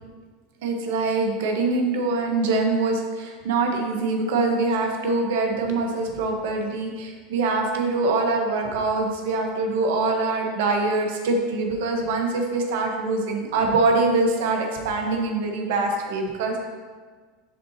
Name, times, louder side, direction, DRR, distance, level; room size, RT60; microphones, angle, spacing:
voice 1, 0.6-16.6, right 3 dB, 75° right, 2 dB, 1.1 m, -24 dB
11.5 x 4.0 x 2.8 m, 1.5 s
hypercardioid pair, 105°, 0 cm